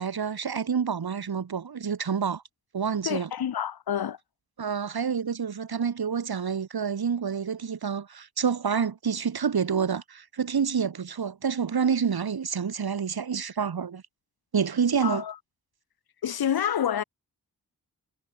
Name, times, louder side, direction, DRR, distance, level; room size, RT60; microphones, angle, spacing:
voice 1, 0.0-2.4 2.7-3.3 4.6-14.0 14.5-15.2, right 6 dB, 90° right, 2.4 m, -28 dB
voice 2, 3.0-4.2 15.0-15.4 16.2-17.0, left 9 dB, 85° left, 0.8 m, -28 dB
wide cardioid pair, 85°, 36 cm